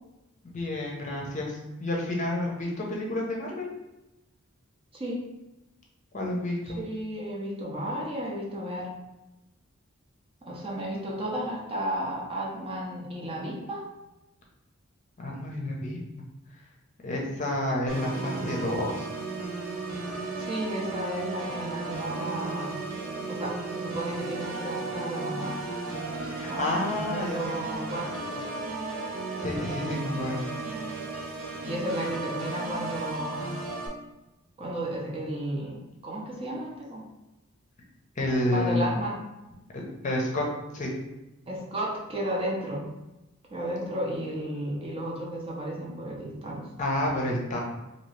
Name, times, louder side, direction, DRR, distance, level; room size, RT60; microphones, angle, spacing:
voice 1, 0.4-3.7 6.1-6.8 15.2-16.2 17.0-19.1 26.3-27.8 29.4-30.4 38.2-38.8 39.7-40.4 40.7-40.9 46.8-47.6, left 1 dB, 35° left, -2 dB, 0.6 m, -30 dB
voice 2, 6.7-8.9 10.4-13.9 20.4-22.8 23.3-25.6 26.5-28.4 29.6-30.3 31.6-33.6 34.6-37.0 38.5-39.2 41.5-42.8 43.5-46.6, right 1 dB, 25° right, -3 dB, 0.6 m, -33 dB
Organ, 17.9-33.9, right 3 dB, 90° right, 0.7 m, -35 dB
2.7 x 2.7 x 3.2 m, 0.98 s
head